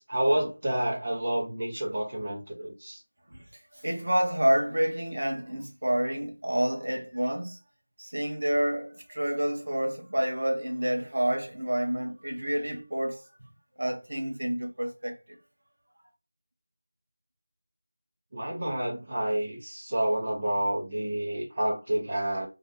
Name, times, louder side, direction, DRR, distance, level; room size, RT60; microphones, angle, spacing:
voice 1, 0.0-3.0 18.3-22.5, right 1 dB, 35° right, 0.9 m, -29 dB
voice 2, 3.8-7.6 8.0-13.2 13.8-15.1, right 1 dB, 65° right, 0.7 m, -28 dB
2.5 x 2.2 x 2.6 m
figure-of-eight pair, 175°, 0 cm